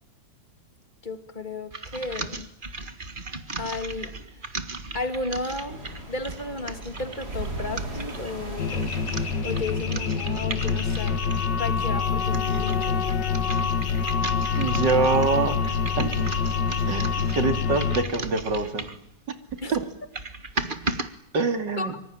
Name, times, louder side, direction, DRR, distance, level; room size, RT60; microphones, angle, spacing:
voice 1, 1.0-2.5 3.6-4.1 4.9-8.9 9.4-11.3 11.6-13.0 19.6-19.7 21.8-21.9, left 3 dB, 25° left, 8 dB, 2.5 m, -33 dB
sound 1, 1.7-11.6 12.1-19.1 19.5-21.1, right 3 dB, 30° right, 1.7 m, -36 dB
sound 2, 5.7-13.4, right 1 dB, 60° right, 5.7 m, -39 dB
sound 3, 8.6-18.0, left 6 dB, 75° left, 2.5 m, -26 dB
voice 2, 14.6-15.6 16.0-16.3 16.9-18.9 19.7-19.8 21.3-21.9, right 4 dB, 85° right, 8 dB, 3.2 m, -25 dB
25.5 x 24.5 x 9.0 m, 0.72 s
omnidirectional pair, 1.9 m